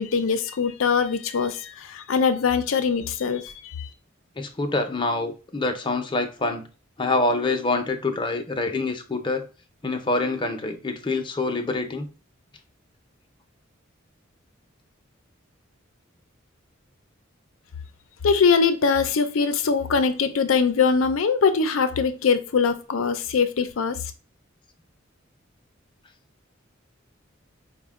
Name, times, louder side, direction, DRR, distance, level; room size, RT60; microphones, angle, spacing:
voice 1, 0.0-3.9 18.2-24.0, left 5 dB, 85° left, 0.5 m, -22 dB
voice 2, 4.4-6.7 7.0-9.5 9.8-12.1, left 2 dB, 25° left, 0.6 m, -26 dB
5.1 x 2.1 x 3.5 m
head